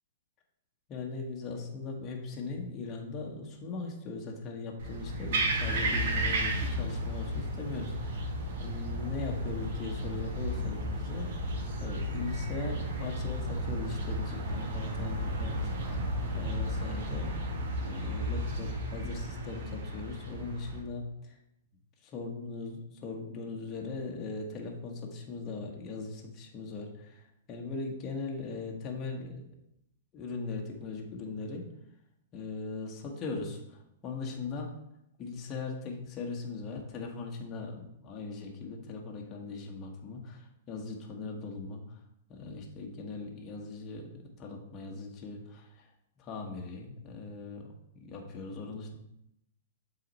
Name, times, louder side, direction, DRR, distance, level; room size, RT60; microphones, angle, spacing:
voice 1, 0.9-8.3 8.6-11.3 11.8-15.5 15.9-16.0 16.3-17.3 17.9-21.4 22.0-29.6 30.1-31.6 32.3-34.7 35.2-42.0 42.3-45.9 46.2-47.7 47.9-49.0, left 4 dB, 30° left, 0 dB, 1.4 m, -39 dB
sound 1, 4.8-20.8, right 1 dB, 65° right, 1.7 m, -33 dB
7.5 x 4.2 x 4.1 m, 0.79 s
hypercardioid pair, 135°, 0 cm